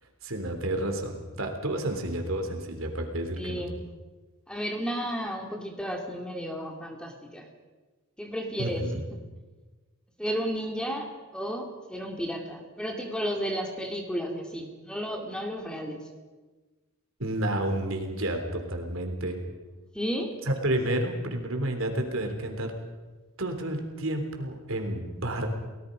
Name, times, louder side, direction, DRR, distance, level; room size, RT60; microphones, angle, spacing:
voice 1, 0.2-3.7 8.6-9.0 17.2-19.4 20.5-22.7 23.4-25.5, right 1 dB, 65° right, 4 dB, 3.5 m, -30 dB
voice 2, 3.4-3.8 4.5-7.5 8.2-8.8 10.2-16.0 19.9-20.4, equal, 5° left, 2 dB, 2.6 m, -33 dB
30.0 x 19.0 x 5.2 m, 1.3 s
head